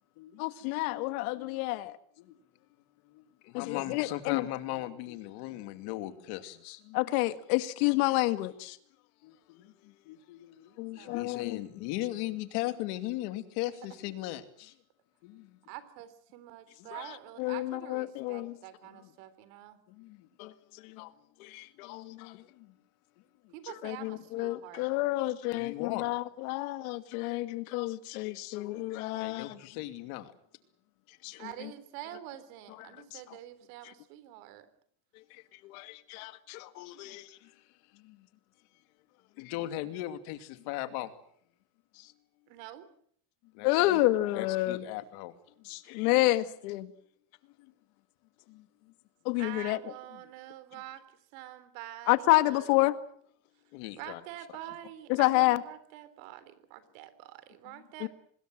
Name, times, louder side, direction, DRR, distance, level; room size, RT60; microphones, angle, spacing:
voice 1, 0.4-1.9 3.5-4.4 6.9-8.8 10.8-11.6 17.4-18.5 20.4-20.5 20.8-21.1 21.4-22.4 23.8-29.6 31.2-31.5 35.6-37.3 43.6-44.8 45.7-46.9 49.3-49.8 52.1-53.0 55.1-55.6 58.0-58.1, left 18 dB, 90° left, 1.9 m, -29 dB
voice 2, 3.1-7.1 9.2-14.8 15.2-15.6 16.8-16.9 18.8-19.1 19.9-20.3 22.3-22.7 23.4-23.5 25.5-26.2 29.2-30.3 36.9-37.0 37.4-37.6 37.9-38.3 39.4-41.1 43.5-44.0 44.3-45.3 45.6-45.7 47.4-47.7 48.5-48.9 50.1-50.3 53.7-54.2 57.6-57.8, left 15 dB, 65° left, 2.7 m, -39 dB
voice 3, 11.0-11.7 15.7-19.8 23.5-24.9 31.4-34.7 42.5-42.9 49.4-51.0 51.3-52.9 54.0-58.1, right 13 dB, 75° right, 3.7 m, -46 dB
25.5 x 20.5 x 7.8 m
cardioid pair, 155°, 41 cm